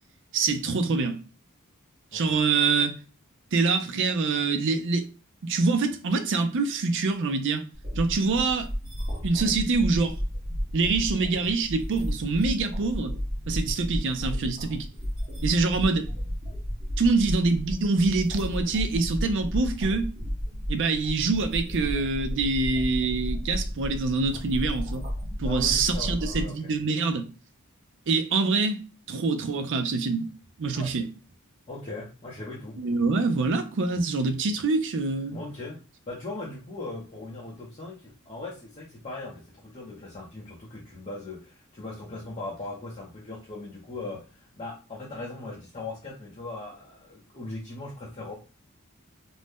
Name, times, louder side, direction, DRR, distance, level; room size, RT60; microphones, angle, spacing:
voice 1, 0.3-1.2 2.1-3.0 3.5-5.1 5.4-7.6 8.0-8.7 9.2-10.2 10.7-13.2 13.5-14.9 15.4-16.1 17.0-20.1 20.7-25.0 25.4-27.2 28.1-28.8 29.1-30.3 30.6-31.1 32.8-35.4, right 3 dB, 60° right, 0.5 m, -25 dB
sound 1, 7.7-26.4, equal, 40° right, 1.1 m, -32 dB
voice 2, 25.4-26.7 30.7-30.9 31.7-32.8 35.3-48.3, left 2 dB, 30° left, 0.7 m, -39 dB
2.6 x 2.1 x 3.4 m
head